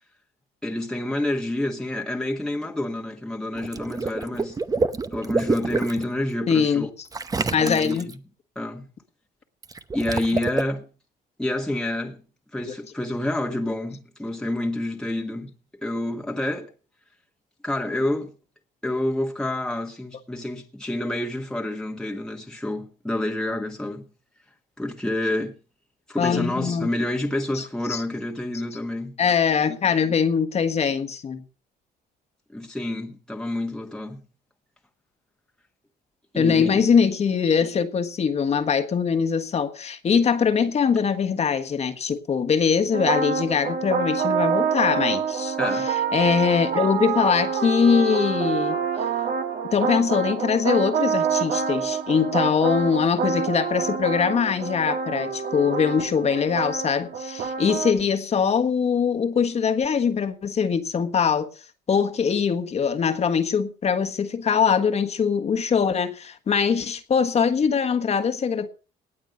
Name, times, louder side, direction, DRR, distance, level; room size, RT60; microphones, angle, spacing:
voice 1, 0.6-4.6 5.1-6.9 7.6-8.1 8.5-8.8 9.9-10.9 11.4-12.2 12.5-15.5 15.8-16.7 17.6-18.3 18.8-24.0 24.8-25.5 26.1-29.2 32.5-34.2 36.3-36.8 45.6-45.9, left 1 dB, 5° left, 1.4 m, -28 dB
Water / Liquid, 3.6-6.0 7.1-8.1 9.6-10.6, right 4 dB, 20° right, 0.8 m, -27 dB
voice 2, 6.5-6.9 7.5-8.1 26.2-26.9 27.5-28.0 29.2-31.4 36.3-45.5 45.9-49.1 49.7-61.5 61.9-68.7, left 6 dB, 40° left, 1.5 m, -22 dB
sound 1, 42.9-57.9, right 6 dB, 60° right, 1.7 m, -26 dB
19.0 x 7.3 x 5.2 m
cardioid pair, 110°, 17 cm